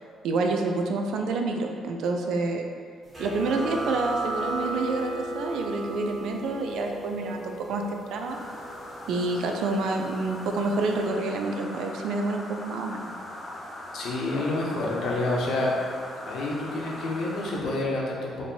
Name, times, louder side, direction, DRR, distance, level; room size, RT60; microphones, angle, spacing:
voice 1, 0.2-2.6 3.2-8.4 9.1-13.1, right 3 dB, 70° right, 3 dB, 0.4 m, -28 dB
sound 1, 3.1-10.4, right 2 dB, 25° right, 1.3 m, -35 dB
sound 2, 8.3-17.6, left 1 dB, 25° left, 0.6 m, -40 dB
voice 2, 13.9-15.7 16.3-18.5, left 2 dB, 65° left, -3 dB, 0.8 m, -28 dB
4.4 x 2.8 x 2.7 m, 2.1 s
cardioid pair, 135°, 0 cm